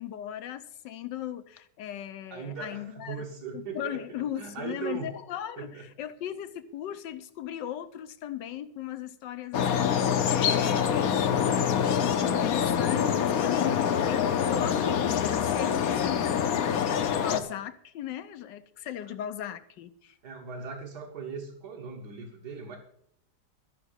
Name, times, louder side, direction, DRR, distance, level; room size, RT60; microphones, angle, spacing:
voice 1, 0.0-3.2 3.5-20.1, left 11 dB, 75° left, 1.4 m, -38 dB
voice 2, 2.3-4.0 4.4-5.1 5.6-5.9 19.0-19.1 20.2-22.8, right 6 dB, 60° right, 1.9 m, -39 dB
sound 1, 9.5-17.4, left 8 dB, 60° left, 1.1 m, -25 dB
13.0 x 6.0 x 8.1 m
omnidirectional pair, 2.0 m